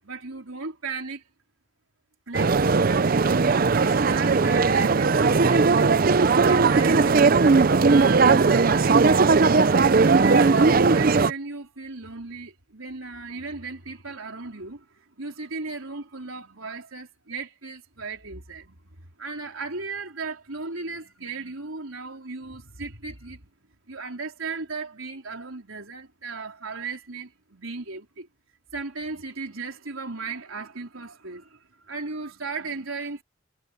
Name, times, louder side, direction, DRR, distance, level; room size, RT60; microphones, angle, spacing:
voice 1, 0.0-1.2 2.3-9.5 10.0-23.5 23.9-28.3 28.7-33.2, right 4 dB, 90° right, 3.9 m, -36 dB
sound 1, 2.3-11.3, right 4 dB, 45° right, 0.5 m, -18 dB
head